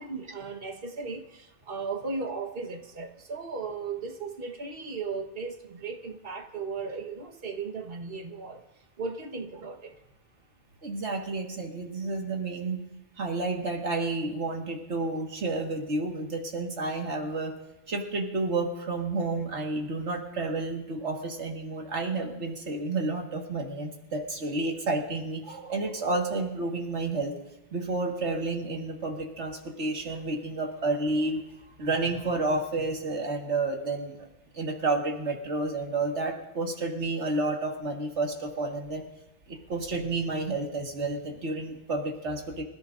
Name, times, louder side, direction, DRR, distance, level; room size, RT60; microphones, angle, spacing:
voice 1, 0.0-8.6 9.0-9.9, right 4 dB, 55° right, 4 dB, 1.6 m, -36 dB
voice 2, 10.8-12.8 13.2-17.5 17.9-27.4 27.7-31.4 31.8-34.3 34.5-39.0 39.5-42.6, right 2 dB, 80° right, 1 dB, 2.1 m, -30 dB
25.5 x 14.5 x 2.6 m, 0.96 s
omnidirectional pair, 1.2 m